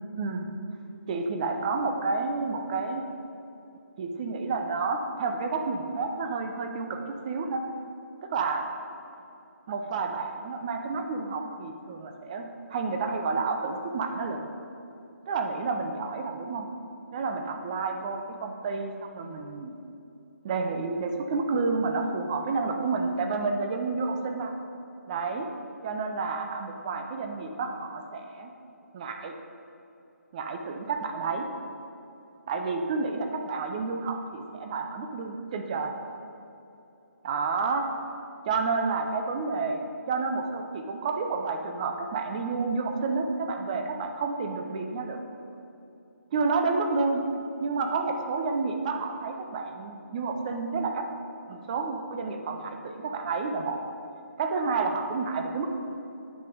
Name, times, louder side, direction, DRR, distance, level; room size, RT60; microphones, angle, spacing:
voice 1, 0.1-0.5 1.1-3.0 4.0-7.6 8.2-8.7 9.7-14.5 15.3-16.7 17.1-19.8 20.4-24.5 25.1-25.5 25.8-28.5 28.9-29.3 30.3-31.5 32.5-35.9 37.2-37.9 38.4-45.2 46.3-47.2 47.6-51.1 51.5-53.8 54.4-55.7, right 4 dB, 25° right, 5 dB, 0.6 m, -30 dB
9.2 x 5.9 x 5.1 m, 2.8 s
figure-of-eight pair, 150°, 9 cm